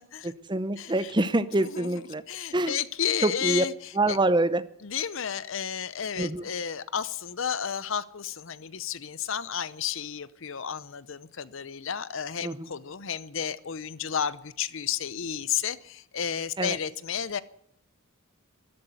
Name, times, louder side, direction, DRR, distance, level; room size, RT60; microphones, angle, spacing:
voice 1, 0.2-2.2 2.5-2.8 3.2-3.6 4.0-4.6 6.2-6.4 12.4-12.6 16.6-16.8, right 2 dB, 20° right, 14 dB, 0.7 m, -25 dB
voice 2, 0.8-1.1 1.5-2.0 2.3-4.2 4.8-17.4, left 8 dB, 60° left, 17 dB, 0.7 m, -32 dB
13.0 x 12.0 x 8.2 m, 0.70 s
head